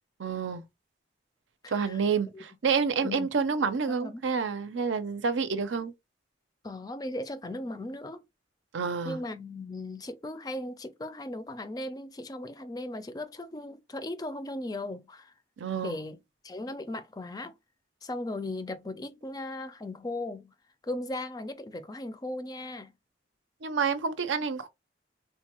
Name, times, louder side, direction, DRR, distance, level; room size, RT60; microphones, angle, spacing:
voice 1, 0.2-0.6 1.7-5.9 8.7-9.2 15.6-15.9 23.6-24.7, right 5 dB, 90° right, 0.5 m, -28 dB
voice 2, 1.6-2.0 2.3-2.4 3.0-3.3 3.9-4.2 6.6-8.2 9.0-15.3 15.8-16.2 16.4-17.5 18.0-20.5 20.8-22.9, left 1 dB, 20° left, 0.3 m, -37 dB
3.8 x 2.2 x 2.9 m
head